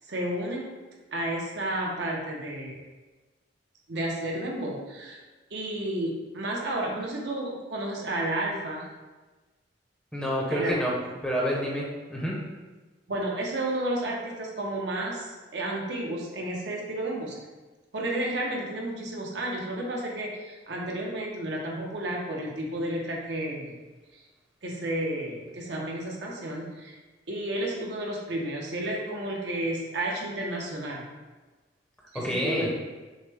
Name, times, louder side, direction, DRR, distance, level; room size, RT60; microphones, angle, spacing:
voice 1, 0.1-0.7 1.1-2.8 3.9-5.2 5.5-8.9 10.5-10.8 13.1-15.3 15.5-17.4 17.9-23.8 24.6-27.0 27.3-31.1 32.1-32.7, right 1 dB, 65° right, -2 dB, 0.8 m, -31 dB
voice 2, 10.1-11.0 11.2-11.8 12.1-12.4 32.1-32.7, equal, 5° left, -4 dB, 0.8 m, -28 dB
6.4 x 2.2 x 3.4 m, 1.2 s
head